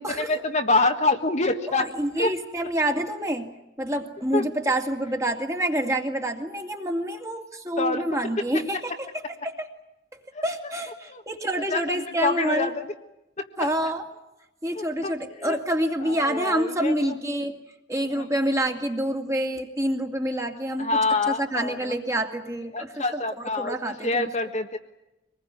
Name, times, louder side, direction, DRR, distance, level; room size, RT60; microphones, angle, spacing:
voice 1, 0.0-1.9 2.2-2.3 4.3-4.4 7.8-8.0 10.3-10.4 11.1-11.2 11.7-12.7 13.4-13.7 14.8-15.1 15.4-15.6 16.1-17.1 18.1-18.2 20.8-22.0 22.7-24.8, left 3 dB, 35° left, 5 dB, 1.6 m, -26 dB
voice 2, 1.7-9.7 10.4-12.7 13.6-14.1 14.6-17.5 17.9-21.0 21.3-24.3, right 1 dB, 15° right, 3 dB, 2.5 m, -27 dB
25.0 x 20.5 x 9.7 m, 0.92 s
head